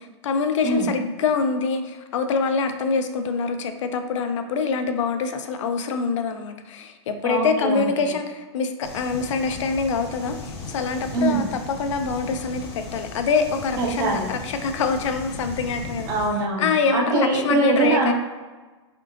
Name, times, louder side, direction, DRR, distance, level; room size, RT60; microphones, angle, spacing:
voice 1, 0.0-16.1 16.6-18.1, left 5 dB, 90° left, 7 dB, 0.5 m, -25 dB
voice 2, 7.2-8.1 11.1-11.4 13.8-14.3 16.1-18.1, right 3 dB, 20° right, 0 dB, 0.4 m, -23 dB
sound 1, 8.8-16.3, left 2 dB, 55° left, 0.7 m, -37 dB
3.7 x 3.6 x 2.4 m, 1.3 s
supercardioid pair, 165°, 15 cm